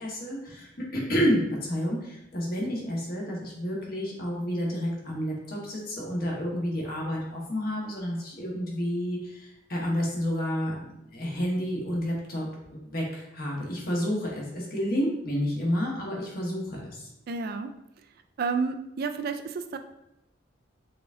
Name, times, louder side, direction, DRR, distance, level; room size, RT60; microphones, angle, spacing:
voice 1, 0.0-10.8 11.1-17.1, equal, 50° left, -2 dB, 1.2 m, -30 dB
voice 2, 17.3-17.7 18.4-19.8, right 4 dB, 50° right, 8 dB, 0.3 m, -30 dB
4.9 x 3.5 x 2.5 m, 0.85 s
head